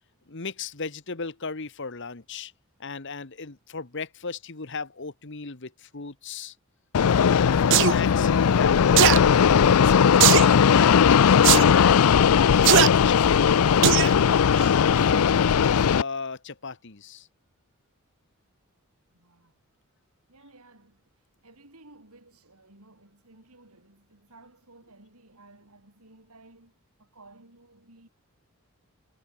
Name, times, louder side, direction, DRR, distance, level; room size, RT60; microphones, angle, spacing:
voice 1, 0.3-2.5 2.8-6.5 7.3-9.4 10.2-12.0 12.7-14.4 14.6-15.5 15.9-17.3, left 4 dB, 55° left, 1.4 m, -35 dB
Fixed-wing aircraft airplane, 6.9-16.0, left 7 dB, 80° left, 0.4 m, -18 dB
sound 1, 7.7-7.9 9.0-9.2 10.2-10.5 11.4-11.6 12.6-12.9 13.8-14.1 14.6-14.7, right 12 dB, 55° right, 0.4 m, -18 dB
voice 2, 19.1-19.7 20.3-28.1, right 2 dB, 80° right, 5.9 m, -55 dB
head